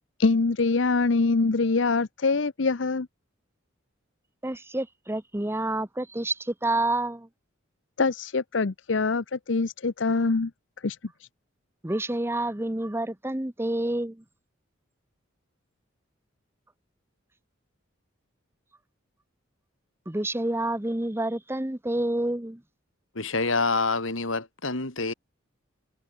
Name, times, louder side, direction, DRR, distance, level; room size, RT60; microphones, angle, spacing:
voice 1, 0.2-3.1 8.0-10.5 10.8-11.3, left 3 dB, 65° left, 0.7 m, -24 dB
voice 2, 4.4-7.3 11.8-14.2 20.1-22.6, right 1 dB, 10° right, 0.9 m, -28 dB
voice 3, 23.1-25.1, left 3 dB, 80° left, 4.1 m, -27 dB
head